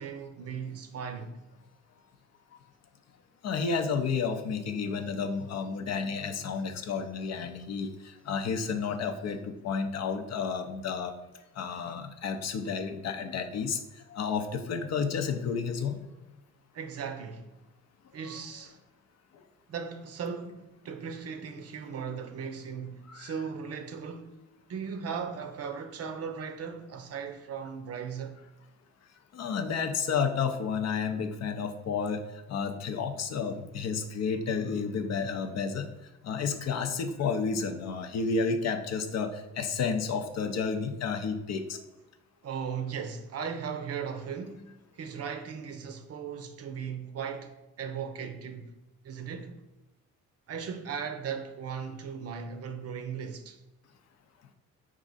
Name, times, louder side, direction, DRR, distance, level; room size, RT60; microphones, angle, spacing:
voice 1, 0.0-1.4 16.7-17.5 18.1-18.8 19.7-24.3 24.7-28.4 42.4-48.7 49.0-49.6 50.5-53.6, right 6 dB, 55° right, 0.6 m, -37 dB
voice 2, 3.4-11.1 11.6-13.8 14.1-16.0 18.3-18.4 23.1-23.3 29.3-32.2 32.5-35.9 36.2-41.8, left 5 dB, 60° left, 0.6 m, -31 dB
4.7 x 2.5 x 4.0 m
cardioid pair, 90°, 30 cm